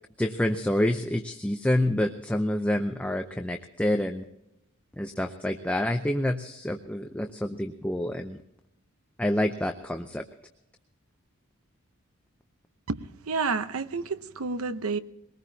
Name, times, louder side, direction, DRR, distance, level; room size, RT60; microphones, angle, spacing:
voice 1, 0.2-4.2 5.0-8.4 9.2-10.2, left 1 dB, 5° left, 5 dB, 0.6 m, -27 dB
voice 2, 12.9-15.0, right 4 dB, 85° right, 12 dB, 0.8 m, -30 dB
22.0 x 19.0 x 2.8 m, 0.85 s
head